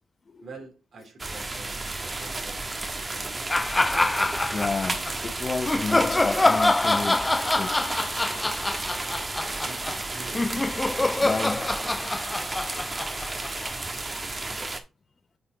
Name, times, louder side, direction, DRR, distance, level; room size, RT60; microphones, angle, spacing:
voice 1, 0.4-3.8 9.4-10.7 12.4-12.6, right 4 dB, 65° right, 3.1 m, -48 dB
sound 1, 1.2-14.8, right 2 dB, 30° right, 1.4 m, -32 dB
sound 2, 3.5-5.1 5.7-13.9, left 2 dB, 20° left, 0.4 m, -25 dB
voice 2, 4.5-7.8 8.5-8.8 11.1-11.7, left 4 dB, 40° left, 0.9 m, -31 dB
8.7 x 4.1 x 3.9 m
cardioid pair, 60°, 0 cm